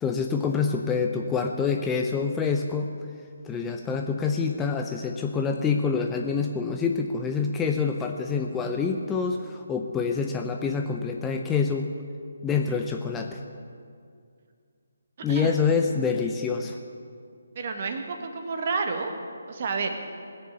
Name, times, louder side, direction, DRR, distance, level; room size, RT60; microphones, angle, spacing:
voice 1, 0.0-2.9 3.4-11.9 12.4-13.4 15.2-16.8, left 5 dB, 10° left, 3 dB, 0.6 m, -26 dB
voice 2, 17.5-19.1 19.5-19.9, right 4 dB, 40° right, 4 dB, 1.6 m, -29 dB
20.0 x 6.8 x 7.8 m, 2.3 s
figure-of-eight pair, 145°, 0 cm